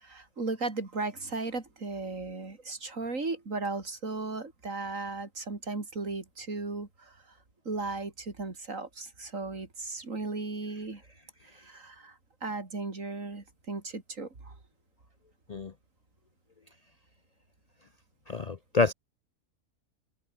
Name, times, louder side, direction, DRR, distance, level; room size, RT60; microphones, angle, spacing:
voice 1, 0.0-7.2 7.7-11.0 11.5-12.2 12.4-14.5, right 3 dB, 75° right, 3.8 m, -36 dB
voice 2, 18.3-18.9, left 4 dB, 40° left, 0.6 m, -27 dB
omnidirectional pair, 1.4 m